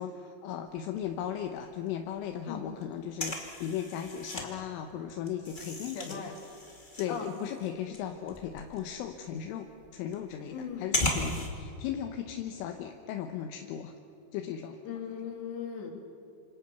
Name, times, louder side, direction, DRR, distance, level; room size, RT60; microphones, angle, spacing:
voice 1, 0.0-6.4 7.0-13.9 14.3-14.8, left 9 dB, 80° left, 4 dB, 3.5 m, -37 dB
sound 1, 0.7-1.6 1.9-2.0 2.2-4.5 4.8-11.5, left 1 dB, 25° left, 0.9 m, -36 dB
voice 2, 5.9-6.3 7.1-7.3 10.5-10.9 14.8-15.9, left 7 dB, 60° left, 3 dB, 4.7 m, -38 dB
27.0 x 27.0 x 6.9 m, 2.7 s
omnidirectional pair, 5.7 m